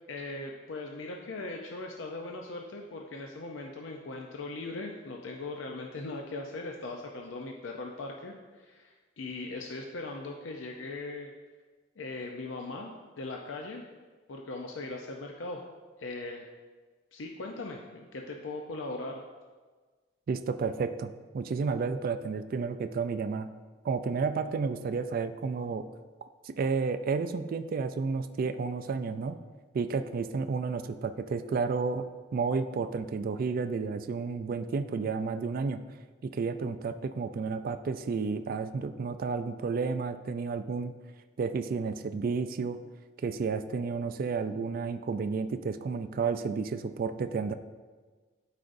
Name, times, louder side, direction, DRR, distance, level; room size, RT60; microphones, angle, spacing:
voice 1, 0.1-11.3 12.0-13.8 14.3-15.6 16.0-16.4 17.1-19.2, left 2 dB, 85° left, 2 dB, 0.6 m, -39 dB
voice 2, 20.3-23.5 23.8-25.9 26.2-29.4 29.7-32.0 32.3-35.8 36.2-40.9 41.4-42.8 43.2-47.5, right 4 dB, 50° right, 10 dB, 0.3 m, -31 dB
11.5 x 4.9 x 2.6 m, 1.4 s
head